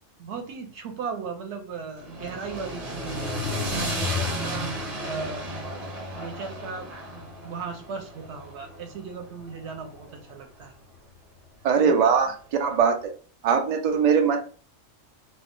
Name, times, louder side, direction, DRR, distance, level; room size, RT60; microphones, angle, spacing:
voice 1, 0.2-4.7 5.0-5.4 6.1-10.7 11.8-12.0 12.2-12.3, right 5 dB, 65° right, 4 dB, 0.9 m, -37 dB
sound 1, 2.0-10.2, left 1 dB, 35° right, 0.8 m, -33 dB
voice 2, 11.6-13.0 13.4-14.4, right 6 dB, 85° right, 4 dB, 0.3 m, -21 dB
2.4 x 2.0 x 3.6 m, 0.40 s
omnidirectional pair, 1.3 m